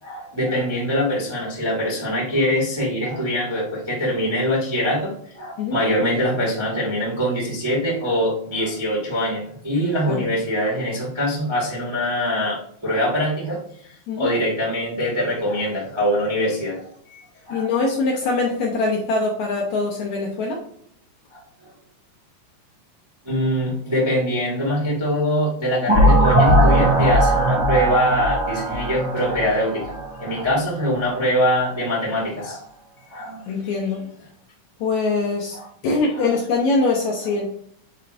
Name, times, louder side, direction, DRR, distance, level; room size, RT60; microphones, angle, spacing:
voice 1, 0.0-13.6 14.1-17.7 21.3-21.4 23.2-32.6 33.1-33.5 35.5-35.7 36.2-36.3, equal, 40° right, -6 dB, 0.3 m, -23 dB
voice 2, 17.5-20.6 33.5-34.0 34.8-35.6 35.8-37.5, left 3 dB, 70° left, -2 dB, 1.8 m, -23 dB
sound 1, 25.9-30.6, right 1 dB, 5° right, 1.5 m, -19 dB
8.6 x 4.4 x 2.5 m, 0.66 s
omnidirectional pair, 4.3 m